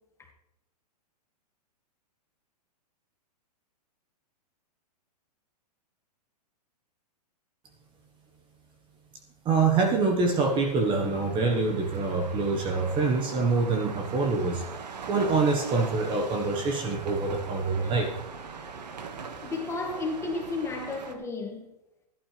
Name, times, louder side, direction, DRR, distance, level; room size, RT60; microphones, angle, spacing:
voice 1, 9.4-14.6 15.1-18.1, right 4 dB, 25° right, 1.3 m, -25 dB
sound 1, 10.2-21.1, right 5 dB, 90° right, 1.7 m, -41 dB
voice 2, 17.8-18.1 19.4-21.7, left 3 dB, 15° left, 1.8 m, -33 dB
16.0 x 11.5 x 3.3 m
hypercardioid pair, 145°, 21 cm